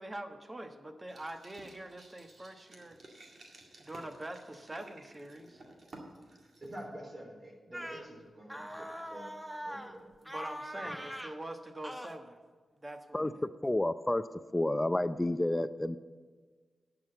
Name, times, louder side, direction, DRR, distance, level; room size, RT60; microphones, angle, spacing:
voice 1, 0.0-3.0 3.8-5.6 10.2-12.4 12.7-13.5, right 1 dB, 30° right, 6 dB, 1.2 m, -44 dB
sound 1, 1.1-6.8, right 2 dB, 60° right, 2.0 m, -54 dB
voice 2, 6.6-9.3 9.6-10.1 10.8-11.0 13.3-13.4, right 1 dB, 45° right, 0 dB, 3.7 m, -47 dB
sound 2, 7.7-8.1 8.5-9.9 10.2-11.4 11.8-12.1, equal, 5° right, 1.1 m, -42 dB
voice 3, 13.6-14.3 14.5-16.0, left 1 dB, 20° left, 13 dB, 0.4 m, -30 dB
11.0 x 5.9 x 7.9 m, 1.5 s
cardioid pair, 45°, 0 cm